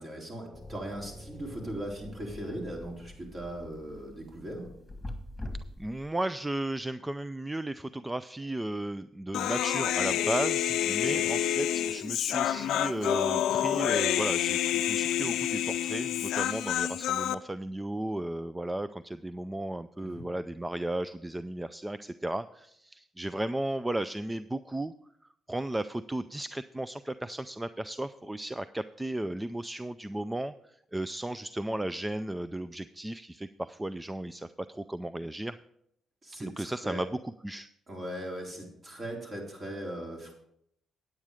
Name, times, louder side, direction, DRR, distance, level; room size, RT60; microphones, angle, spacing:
voice 1, 0.0-4.7 11.1-11.2 20.0-20.2 36.2-37.0 37.9-40.3, right 1 dB, 40° right, -1 dB, 4.0 m, -39 dB
sound 1, 0.5-6.1, left 1 dB, 10° left, 1.7 m, -44 dB
voice 2, 5.8-24.9 25.5-35.5 36.4-37.1 37.4-37.7, right 1 dB, 10° right, 13 dB, 0.4 m, -35 dB
Human voice, 9.3-17.4, left 11 dB, 80° left, 0.5 m, -28 dB
9.4 x 8.8 x 4.9 m, 0.72 s
cardioid pair, 90°, 0 cm